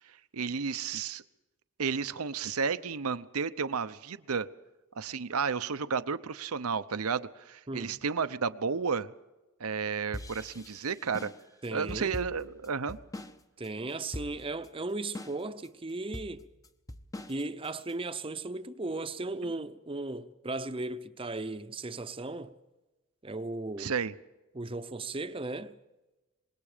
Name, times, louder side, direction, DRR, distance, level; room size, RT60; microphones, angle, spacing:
voice 1, 0.3-1.2 1.8-4.5 5.0-9.1 9.6-11.3 11.7-13.0 23.8-24.1, right 5 dB, 85° right, 0.8 m, -32 dB
voice 2, 7.7-8.0 11.6-12.2 13.6-16.5 17.3-22.6 23.2-23.9 24.5-25.8, right 2 dB, 25° right, 0.7 m, -36 dB
sound 1, 10.1-13.4 13.6-13.7 14.1-14.7 15.1-15.7 16.1-17.9, left 1 dB, 15° left, 0.8 m, -42 dB
26.0 x 21.0 x 5.1 m
head